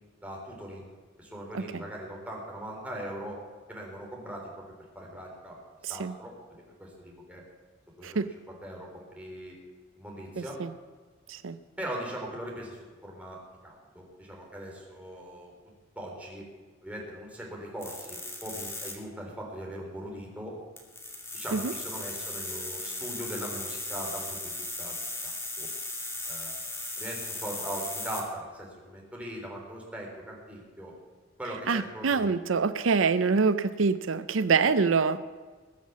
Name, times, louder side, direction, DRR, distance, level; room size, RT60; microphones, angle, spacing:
voice 1, 0.2-0.9 1.2-3.4 3.7-4.6 5.0-5.6 5.9-7.4 8.0-9.6 10.0-10.6 11.8-13.4 13.6-15.5 16.0-16.4 16.8-20.6 21.3-25.0 25.2-25.3 25.6-25.7 26.3-30.9 31.4-32.6, right 1 dB, 5° right, -2 dB, 3.7 m, -40 dB
voice 2, 5.8-6.1 8.0-8.3 10.4-10.7 11.3-11.6 21.5-21.7 31.7-35.2, right 5 dB, 90° right, 13 dB, 0.6 m, -26 dB
sound 1, 17.8-18.9 20.8-28.2, left 2 dB, 15° left, 2.4 m, -37 dB
20.5 x 7.5 x 7.3 m, 1.4 s
head